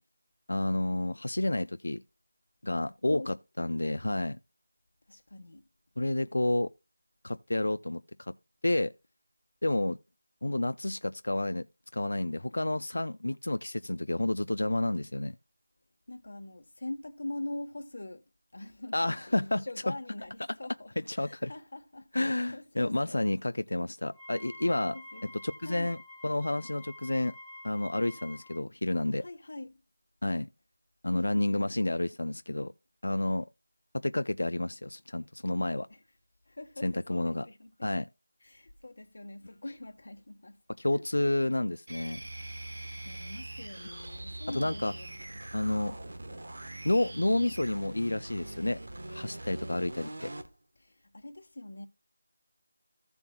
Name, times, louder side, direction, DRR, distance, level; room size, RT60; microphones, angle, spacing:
voice 1, 0.5-2.0 2.6-4.4 6.0-6.7 7.2-8.3 8.6-8.9 9.6-10.0 10.4-11.7 11.9-15.3 18.9-19.6 21.1-21.5 22.1-26.0 26.2-27.4 27.6-29.2 30.2-30.5 31.0-32.7 33.0-33.5 33.9-35.9 36.8-37.5 37.8-38.1 40.8-42.2 44.5-44.9 45.5-46.0 46.8-48.8 49.1-50.3, left 1 dB, 80° left, 0.4 m, -30 dB
voice 2, 5.1-5.6 16.1-18.2 18.5-23.2 24.9-25.3 25.6-25.9 29.2-29.8 31.1-31.7 35.9-36.0 36.5-37.9 38.4-40.6 40.9-41.5 42.6-45.4 50.8-51.9, left 2 dB, 55° left, 1.3 m, -44 dB
Wind instrument woodwind instrument, 24.1-28.6, left 1 dB, 5° left, 2.0 m, -48 dB
sound 1, 41.9-50.5, right 1 dB, 60° right, 1.3 m, -42 dB
15.0 x 7.0 x 2.3 m
figure-of-eight pair, 175°, 0 cm